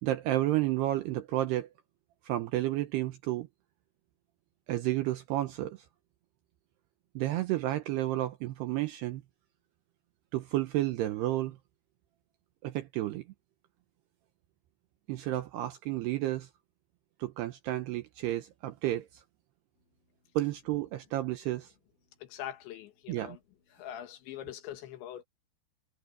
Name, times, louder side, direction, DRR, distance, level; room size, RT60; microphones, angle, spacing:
voice 1, 0.0-1.7 2.2-3.5 4.7-5.8 7.2-9.2 10.3-11.6 12.6-13.2 15.1-16.5 17.2-19.2 20.4-21.7 23.1-23.4, right 15 dB, 80° right, 2.5 m, -31 dB
voice 2, 22.2-23.4 23.7-25.2, left 11 dB, 70° left, 3.7 m, -43 dB
omnidirectional pair, 5.6 m